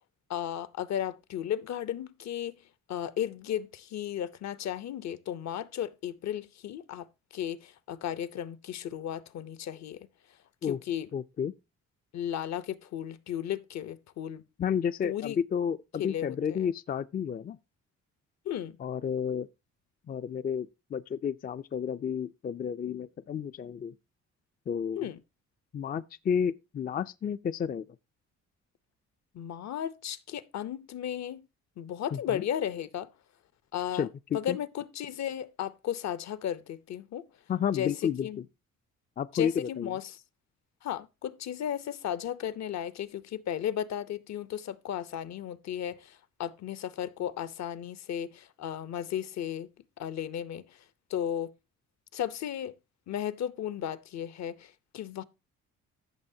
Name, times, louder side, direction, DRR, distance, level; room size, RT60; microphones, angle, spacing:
voice 1, 0.3-2.6 2.9-7.1 7.3-10.1 10.7-11.1 12.1-14.4 15.0-15.4 16.0-16.7 18.4-18.8 25.0-25.2 29.3-31.5 31.8-33.1 33.7-34.1 34.3-37.3 37.7-38.4 39.3-40.2 40.8-49.7 50.0-50.8 51.1-51.5 52.1-52.8 53.1-55.2, left 10 dB, 60° left, 0.7 m, -35 dB
voice 2, 11.1-11.5 14.6-17.6 18.8-19.5 20.1-23.9 24.7-25.1 25.7-27.8 32.1-32.4 33.9-34.6 37.5-38.4 39.2-40.0, left 7 dB, 30° left, 0.4 m, -31 dB
14.5 x 6.2 x 2.7 m
cardioid pair, 90°, 30 cm